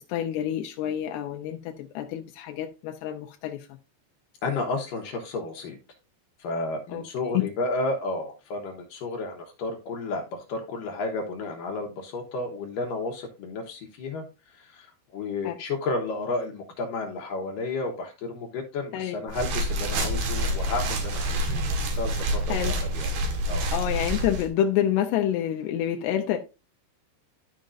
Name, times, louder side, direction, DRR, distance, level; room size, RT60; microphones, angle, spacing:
voice 1, 0.1-1.6 2.0-3.6 6.9-7.0 15.4-15.5 18.9-19.2 22.5-22.7 23.7-26.4, left 10 dB, 85° left, 2.8 m, -27 dB
voice 2, 4.4-5.8 6.4-23.1 23.5-23.6, left 3 dB, 65° left, 2.5 m, -32 dB
sound 1, 19.3-24.5, right 1 dB, 65° right, 3.2 m, -27 dB
13.0 x 5.2 x 2.5 m
omnidirectional pair, 4.8 m